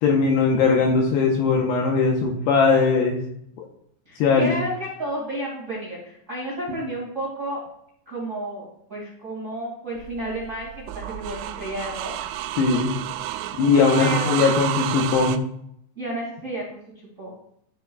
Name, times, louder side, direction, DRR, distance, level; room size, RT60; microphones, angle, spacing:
voice 1, 0.0-3.2 3.6-3.7 4.2-4.5 12.6-12.9 13.6-15.4, left 4 dB, 75° left, 0 dB, 2.6 m, -19 dB
voice 2, 4.0-7.6 8.0-12.1 14.0-14.4 15.9-16.8 17.2-17.3, right 1 dB, 30° right, -5 dB, 1.4 m, -31 dB
sound 1, 10.0-15.4, right 13 dB, 85° right, 3.0 m, -30 dB
13.0 x 6.4 x 2.3 m, 0.72 s
omnidirectional pair, 5.4 m